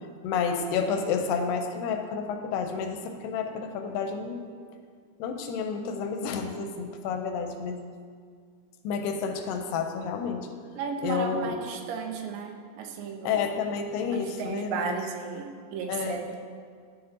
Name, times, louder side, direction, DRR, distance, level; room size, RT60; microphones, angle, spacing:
voice 1, 0.2-4.4 5.2-7.8 8.8-10.5 11.0-11.6 13.2-14.9 15.9-16.2, left 6 dB, 90° left, 5 dB, 2.3 m, -30 dB
voice 2, 10.8-13.5 14.1-16.4, right 5 dB, 85° right, 3 dB, 2.5 m, -34 dB
11.5 x 6.8 x 2.7 m, 2.1 s
omnidirectional pair, 3.9 m